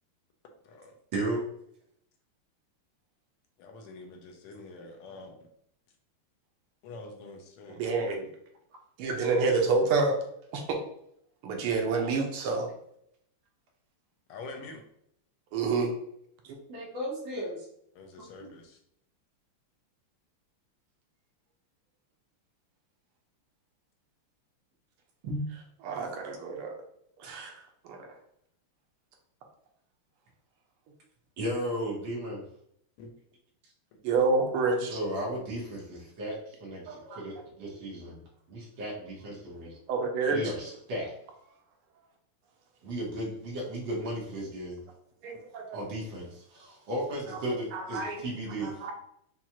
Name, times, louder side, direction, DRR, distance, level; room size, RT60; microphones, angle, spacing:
voice 1, 1.1-1.4 16.7-17.7 18.2-18.5 25.2-25.4 31.4-32.4 34.9-38.2 38.5-39.7 40.3-41.1 42.8-44.8 45.7-48.8, right 1 dB, 65° right, -4 dB, 1.9 m, -35 dB
voice 2, 3.6-5.5 6.8-8.2 14.3-14.8 17.9-18.8 33.0-33.1, left 3 dB, 85° left, 3 dB, 1.7 m, -46 dB
voice 3, 7.7-8.3 9.0-10.2 10.5-10.8 11.4-12.7 15.5-15.9 25.8-26.7 27.2-27.5 27.8-28.1 34.0-35.0 36.9-37.2 39.9-40.5 45.2-45.8 47.7-48.9, right 4 dB, 85° right, 2 dB, 1.7 m, -28 dB
5.9 x 2.4 x 2.8 m, 0.71 s
omnidirectional pair, 2.4 m